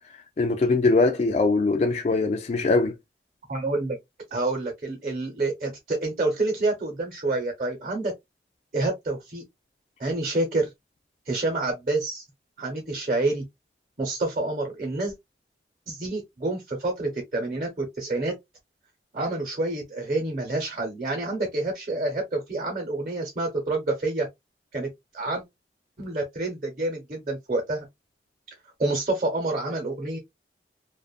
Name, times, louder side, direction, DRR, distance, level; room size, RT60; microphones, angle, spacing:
voice 1, 0.4-3.0, left 3 dB, 40° left, 0.3 m, -22 dB
voice 2, 3.5-4.0 4.3-8.1 8.7-9.4 10.0-10.7 11.3-12.2 12.6-13.4 14.0-15.1 15.9-18.3 19.1-24.3 24.7-24.9 25.1-25.4 26.0-27.9 28.8-30.2, right 2 dB, 45° right, 0.9 m, -28 dB
2.5 x 2.4 x 2.3 m
head